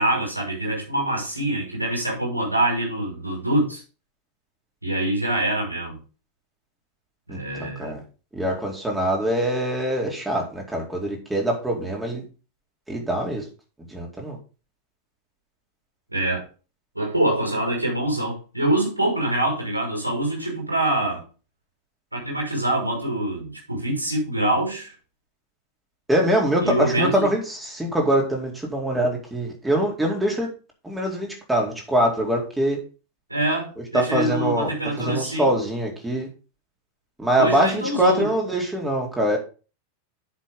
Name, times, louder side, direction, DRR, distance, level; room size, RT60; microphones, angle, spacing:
voice 1, 0.0-3.8 4.8-6.0 7.3-7.9 16.1-16.4 16.9-21.2 22.1-24.9 26.6-27.3 33.3-35.5 37.3-38.3, right 1 dB, 80° right, 6.1 m, -25 dB
voice 2, 7.3-8.0 8.3-12.2 12.9-13.4 13.9-14.4 26.1-30.5 30.8-32.8 33.9-36.3 37.2-39.4, right 1 dB, 10° right, 4.3 m, -23 dB
10.5 x 7.6 x 4.0 m
figure-of-eight pair, 90°, 0 cm